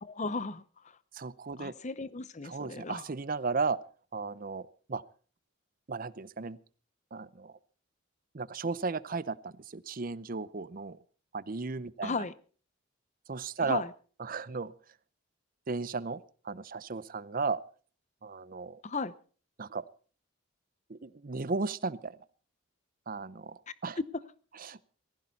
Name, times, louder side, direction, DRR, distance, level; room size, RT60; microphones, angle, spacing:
voice 1, 0.0-1.0 1.6-3.0 12.0-12.3 13.6-13.9 18.8-19.1, left 3 dB, 35° left, 17 dB, 0.8 m, -36 dB
voice 2, 1.1-1.7 2.4-3.8 4.1-5.0 5.9-6.6 7.1-7.6 8.3-11.0 11.3-12.1 13.3-13.8 14.2-14.7 15.7-17.6 18.2-18.8 19.6-19.8 20.9-22.2 23.1-24.0 24.6-24.8, right 4 dB, 45° right, 17 dB, 0.7 m, -35 dB
19.0 x 15.5 x 4.1 m, 0.40 s
head